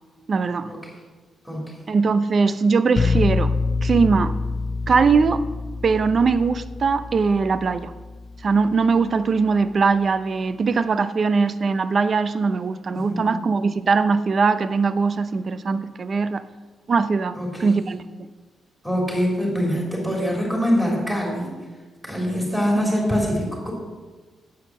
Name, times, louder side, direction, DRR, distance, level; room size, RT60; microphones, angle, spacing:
voice 1, 0.3-0.7 1.9-3.5 3.8-4.3 4.9-5.4 5.8-7.9 8.4-16.4 16.9-18.3, right 4 dB, 35° right, 13 dB, 0.5 m, -21 dB
voice 2, 1.4-1.9 12.9-13.4 17.3-17.8 18.8-21.5 22.0-23.7, equal, ahead, -2 dB, 3.2 m, -24 dB
sound 1, 3.0-8.7, left 4 dB, 25° left, 0.4 m, -26 dB
9.5 x 8.5 x 7.3 m, 1.3 s
wide cardioid pair, 160°, 0 cm